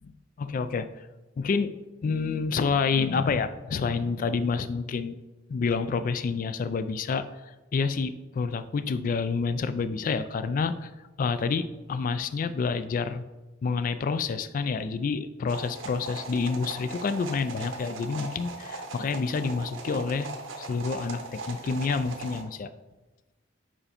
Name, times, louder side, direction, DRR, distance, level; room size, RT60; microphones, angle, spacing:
voice 1, 0.0-1.1 1.4-1.7 2.0-5.2 5.5-7.3 7.7-10.9 11.2-13.2 13.6-20.3 20.6-22.7, left 5 dB, 45° left, 12 dB, 0.3 m, -28 dB
sound 1, 15.5-22.4, right 3 dB, 80° right, 0.8 m, -39 dB
4.9 x 4.3 x 5.0 m, 1.1 s
head